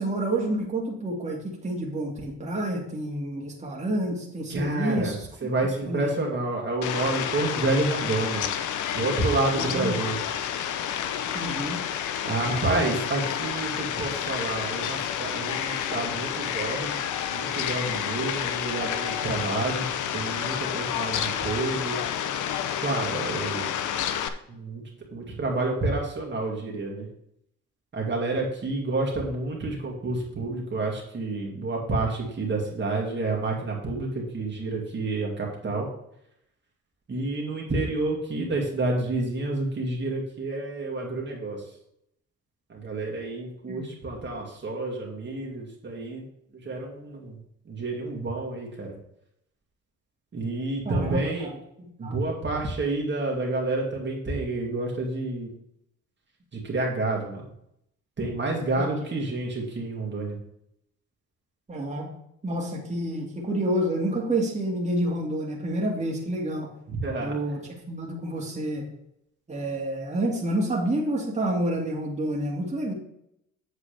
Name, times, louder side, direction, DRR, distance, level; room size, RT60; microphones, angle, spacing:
voice 1, 0.0-5.3 5.8-6.2 9.6-10.0 11.3-11.8 12.4-13.0 43.7-43.9 50.8-51.5 52.0-52.2 58.8-58.9 61.7-62.1 62.4-66.7 67.2-67.6 67.9-68.9 69.5-72.9, right 1 dB, 25° right, -2 dB, 2.2 m, -29 dB
voice 2, 4.5-5.1 5.4-8.4 8.9-10.2 12.2-17.0 17.3-19.9 20.1-22.0 22.8-23.7 24.5-24.8 25.1-27.1 27.9-35.9 37.1-41.6 42.7-46.2 46.7-47.4 47.7-48.9 50.3-51.5 52.0-55.5 56.6-57.4 58.2-60.4 66.9-67.3, right 2 dB, 40° right, -2 dB, 2.2 m, -29 dB
Fowl, 6.8-24.3, left 9 dB, 80° left, 0.7 m, -30 dB
8.0 x 7.3 x 3.4 m, 0.76 s
cardioid pair, 90°, 30 cm